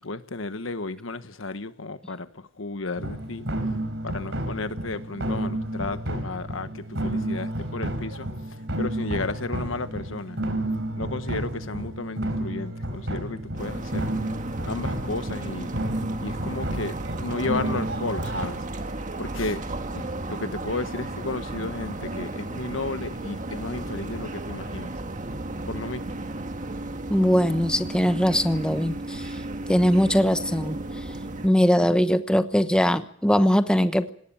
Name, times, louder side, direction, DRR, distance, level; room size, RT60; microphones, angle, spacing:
voice 1, 0.0-3.5 4.0-10.4 11.0-14.1 14.6-15.7 16.2-18.6 19.2-19.6 19.9-24.9 25.7-26.2, left 3 dB, 80° left, 1.2 m, -33 dB
sound 1, 3.0-18.5, right 1 dB, 70° right, 4.1 m, -31 dB
sound 2, 13.6-31.5, right 2 dB, 40° right, 1.7 m, -34 dB
voice 2, 27.1-29.2 29.7-30.8 31.4-34.1, equal, 5° left, 1.0 m, -21 dB
20.5 x 18.5 x 8.9 m
head